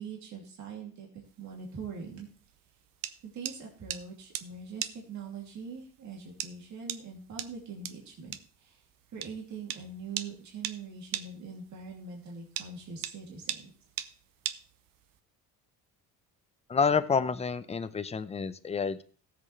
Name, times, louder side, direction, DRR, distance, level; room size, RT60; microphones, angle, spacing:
voice 1, 0.0-2.3 3.3-8.8 9.1-13.7, right 5 dB, 55° right, -1 dB, 2.8 m, -43 dB
sound 1, 1.2-15.2, right 12 dB, 75° right, 0.8 m, -40 dB
voice 2, 16.7-19.0, left 5 dB, 20° left, 12 dB, 0.6 m, -28 dB
17.5 x 7.8 x 3.3 m, 0.42 s
cardioid pair, 140°, 34 cm